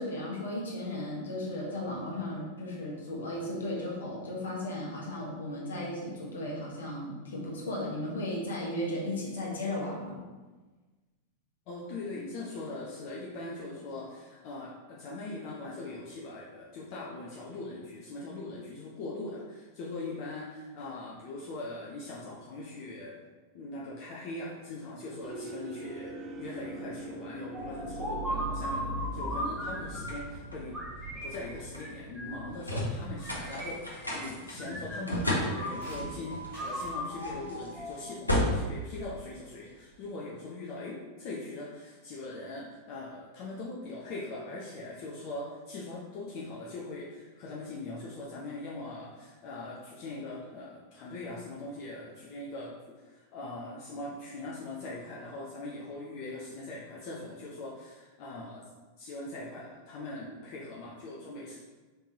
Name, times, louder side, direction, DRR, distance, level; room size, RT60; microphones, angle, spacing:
voice 1, 0.0-10.2, left 1 dB, 70° left, -4 dB, 1.2 m, -35 dB
voice 2, 11.7-23.2 23.5-58.7 59.0-61.6, left 2 dB, 45° left, -4 dB, 0.6 m, -41 dB
sound 1, 25.2-31.8, right 2 dB, 25° right, 0.6 m, -44 dB
sound 2, 27.5-30.3 30.7-32.5 33.2-34.3 34.6-36.0 36.5-38.3, equal, 5° right, 1.0 m, -38 dB
sound 3, 27.6-39.9, equal, 85° left, 0.8 m, -36 dB
4.5 x 3.5 x 2.8 m, 1.3 s
figure-of-eight pair, 90°, 0 cm